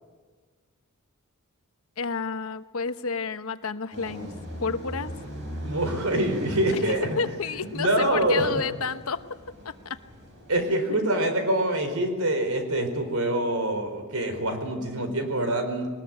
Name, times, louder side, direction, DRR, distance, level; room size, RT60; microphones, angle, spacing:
voice 1, 2.0-4.3 4.6-5.1 6.7-9.2 9.6-10.0 11.2-11.3, left 5 dB, 70° left, 11 dB, 1.0 m, -30 dB
sound 1, 3.9-10.6, equal, 55° right, 7.9 m, -39 dB
voice 2, 5.6-7.1 7.7-8.6 10.5-15.9, right 1 dB, 80° right, 7 dB, 4.6 m, -25 dB
21.5 x 20.0 x 9.4 m, 1.5 s
head